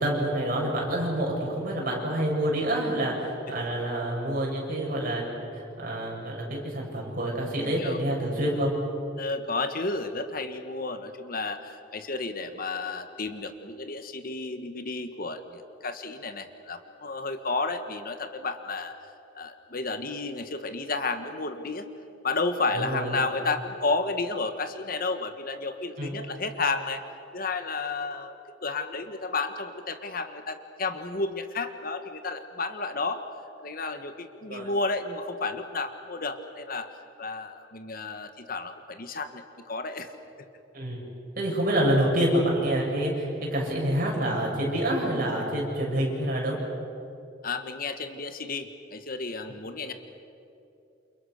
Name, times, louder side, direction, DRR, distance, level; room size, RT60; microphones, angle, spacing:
voice 1, 0.0-8.7 22.7-23.1 26.0-26.1 34.5-34.7 40.7-41.1 41.4-46.6, right 1 dB, 50° right, -2 dB, 7.8 m, -27 dB
voice 2, 7.6-8.0 9.2-19.0 19.3-21.9 22.2-27.0 27.3-33.2 33.6-36.9 37.2-40.1 47.4-49.9, left 3 dB, 50° left, 8 dB, 1.5 m, -32 dB
29.0 x 28.0 x 6.6 m, 2.8 s
head